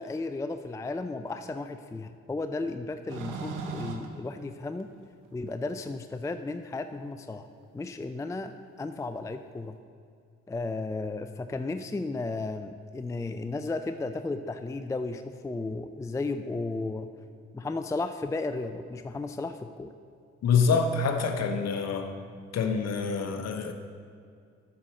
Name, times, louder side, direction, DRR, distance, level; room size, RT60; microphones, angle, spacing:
voice 1, 0.0-4.9 5.3-7.5 7.7-9.8 10.5-17.1 17.5-19.9, left 3 dB, 10° left, 9 dB, 0.4 m, -34 dB
sound 1, 3.1-5.3 6.1-6.2 7.6-7.7 9.5-9.6, right 4 dB, 70° right, 0.9 m, -37 dB
voice 2, 20.4-22.1 22.5-23.7, left 5 dB, 50° left, 7 dB, 1.0 m, -26 dB
8.2 x 5.7 x 6.3 m, 2.4 s
hypercardioid pair, 40°, 33 cm